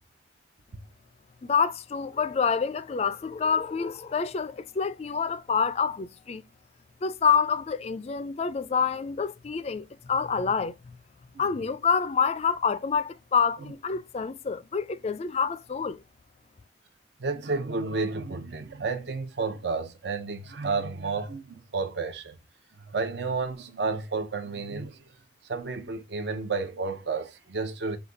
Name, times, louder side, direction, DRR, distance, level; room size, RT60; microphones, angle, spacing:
voice 1, 1.4-6.4 7.0-11.0 11.4-16.0, left 6 dB, 35° left, 0.3 m, -27 dB
voice 2, 17.2-22.4 22.8-25.0 25.4-28.0, right 4 dB, 65° right, 0.7 m, -31 dB
5.0 x 2.3 x 3.8 m
head